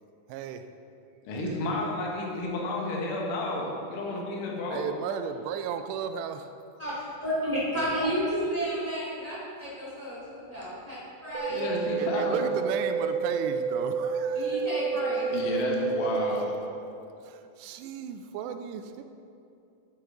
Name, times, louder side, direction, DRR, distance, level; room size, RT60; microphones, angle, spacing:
voice 1, 0.3-0.6 1.5-1.6 4.7-6.5 12.0-14.7 15.5-15.6 17.2-19.0, right 7 dB, 90° right, 8 dB, 2.8 m, -35 dB
voice 2, 1.3-4.9 11.5-12.5 15.3-16.5, left 2 dB, 65° left, -2 dB, 2.5 m, -31 dB
voice 3, 6.8-10.2 10.5-11.7 14.3-15.3, equal, 15° left, -9 dB, 1.2 m, -31 dB
sound 1, 11.3-16.4, right 5 dB, 70° right, 2.9 m, -29 dB
9.3 x 8.9 x 3.7 m, 2.6 s
omnidirectional pair, 4.8 m